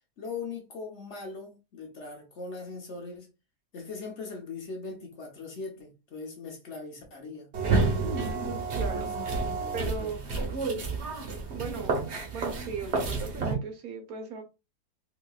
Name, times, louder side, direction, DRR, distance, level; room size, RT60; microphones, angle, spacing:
voice 1, 0.2-3.3 3.7-7.5 8.9-9.1 9.6-10.7, left 4 dB, 50° left, 1.1 m, -40 dB
sound 1, 7.5-13.5, right 3 dB, 50° right, 1.1 m, -30 dB
voice 2, 8.7-9.1 9.7-10.3 11.5-12.0 12.3-14.4, right 5 dB, 70° right, 1.2 m, -37 dB
3.9 x 2.9 x 2.3 m
omnidirectional pair, 1.6 m